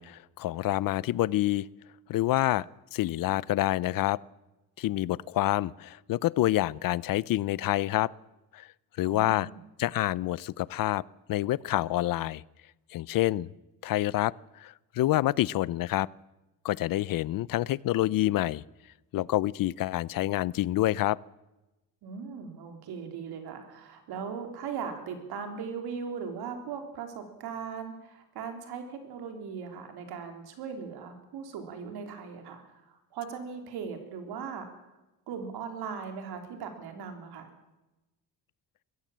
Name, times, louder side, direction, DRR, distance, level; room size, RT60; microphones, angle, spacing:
voice 1, 0.0-1.7 2.1-2.6 2.9-4.2 4.8-8.1 8.5-8.7 9.0-9.5 9.8-11.0 11.3-12.4 12.9-13.5 13.8-14.3 14.6-16.1 16.6-18.6 19.1-21.2, left 15 dB, 60° left, 22 dB, 0.6 m, -27 dB
voice 2, 9.0-9.6 22.0-34.7 35.3-37.5, right 6 dB, 80° right, 5 dB, 3.9 m, -39 dB
22.5 x 16.0 x 7.4 m, 1.0 s
cardioid pair, 145°, 38 cm